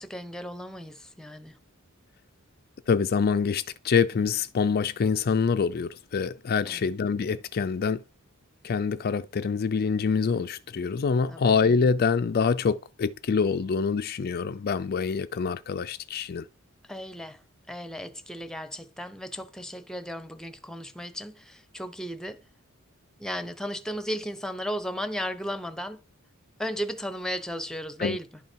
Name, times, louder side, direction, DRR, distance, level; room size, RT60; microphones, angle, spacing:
voice 1, 0.0-1.6 6.6-6.8 11.3-11.5 16.9-17.4 17.7-22.4 23.2-26.0 26.6-28.4, equal, 5° left, 0.8 m, -35 dB
voice 2, 2.9-8.0 8.6-16.5 28.0-28.2, left 5 dB, 45° left, 0.4 m, -25 dB
11.0 x 5.6 x 4.5 m
head